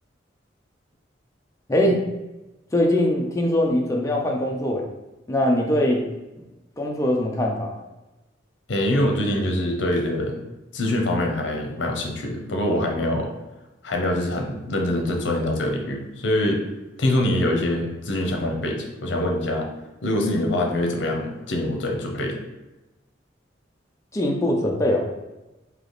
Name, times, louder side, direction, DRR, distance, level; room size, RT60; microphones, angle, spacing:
voice 1, 1.7-2.0 2.7-4.9 5.3-6.0 6.8-7.7 24.1-25.0, left 1 dB, 15° left, 0 dB, 0.4 m, -22 dB
voice 2, 8.7-10.4 10.7-13.3 13.8-16.6 17.0-19.7 20.0-22.4, left 1 dB, 70° left, 2 dB, 0.7 m, -24 dB
3.4 x 2.8 x 3.9 m, 1.0 s
head